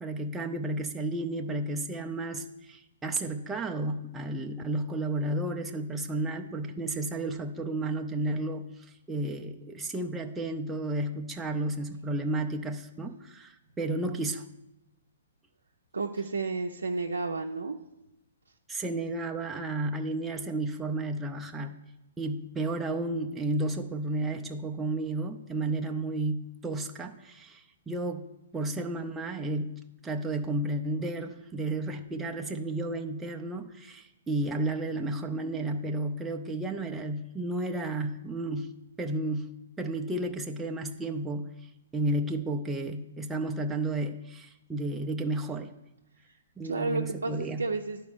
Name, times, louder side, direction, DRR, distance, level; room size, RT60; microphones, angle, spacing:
voice 1, 0.0-14.5 18.7-21.7 22.2-38.7 39.0-41.7 41.9-45.7 46.6-47.6, right 2 dB, 10° right, 2 dB, 0.5 m, -32 dB
voice 2, 15.9-17.8 46.3-46.4 46.6-48.0, right 3 dB, 85° right, 1 dB, 0.5 m, -31 dB
11.0 x 4.5 x 3.5 m, 0.91 s
hypercardioid pair, 125°, 0 cm